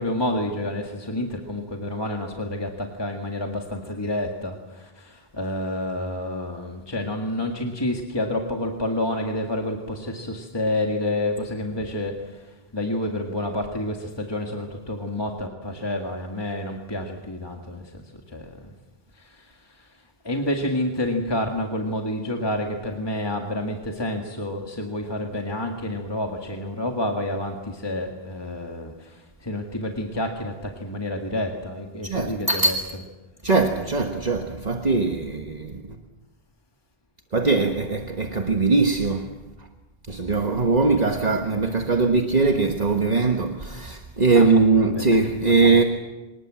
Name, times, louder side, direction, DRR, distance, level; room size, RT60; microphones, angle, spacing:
voice 1, 0.0-18.0 18.3-18.5 19.2-19.9 20.2-32.8 44.3-44.5 44.8-45.1 45.5-45.6, left 1 dB, 25° left, 2.0 m, -29 dB
voice 2, 32.1-32.8 33.4-35.8 37.3-39.3 40.1-45.8, right 3 dB, 40° right, 1.5 m, -21 dB
25.5 x 20.0 x 7.6 m
omnidirectional pair, 1.0 m